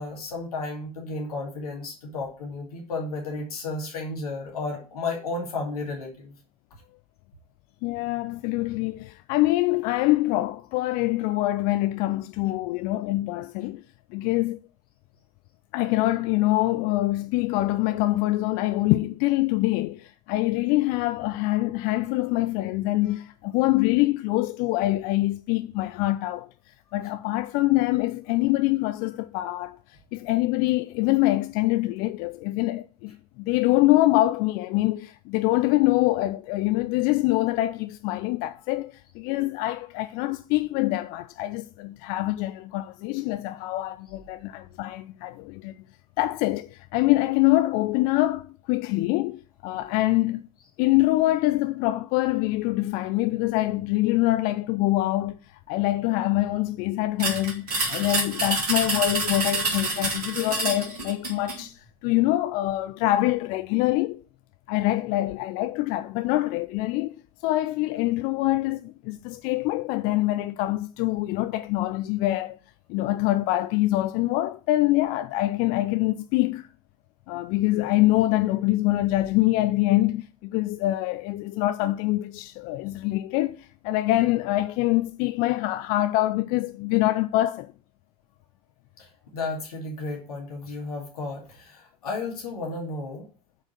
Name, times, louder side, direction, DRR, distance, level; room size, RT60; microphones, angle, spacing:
voice 1, 0.0-6.3 89.0-89.1 89.3-93.3, left 3 dB, 75° left, 2.5 m, -33 dB
voice 2, 7.8-13.8 14.1-14.6 15.7-26.5 26.9-29.8 30.1-45.8 46.2-50.5 50.8-55.4 55.7-64.2 64.7-67.1 67.4-72.6 72.9-76.7 77.3-87.7, left 17 dB, 50° left, 0.5 m, -25 dB
sound 1, 57.2-61.6, right 2 dB, 80° right, 2.9 m, -27 dB
7.8 x 4.8 x 6.3 m
figure-of-eight pair, 80°, 19 cm